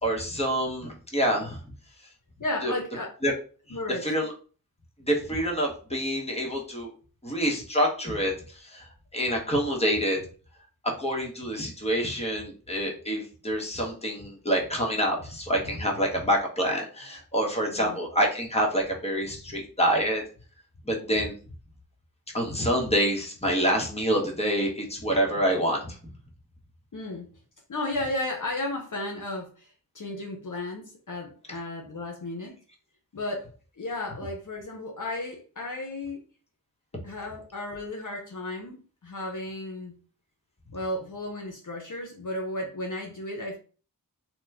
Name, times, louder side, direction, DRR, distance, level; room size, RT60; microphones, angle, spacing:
voice 1, 0.0-1.6 2.6-2.7 3.2-3.3 4.0-4.3 5.1-6.9 7.2-8.9 9.1-10.3 10.8-20.2 20.9-21.3 22.3-26.0, equal, 15° left, -1 dB, 1.0 m, -27 dB
voice 2, 2.4-3.1 3.7-4.1 17.7-18.0 26.9-27.3 27.7-29.7 29.9-32.6 33.1-36.2 37.0-40.0 40.7-43.6, left 2 dB, 60° left, 1 dB, 0.7 m, -34 dB
2.9 x 2.1 x 3.5 m, 0.38 s
wide cardioid pair, 45°, 36 cm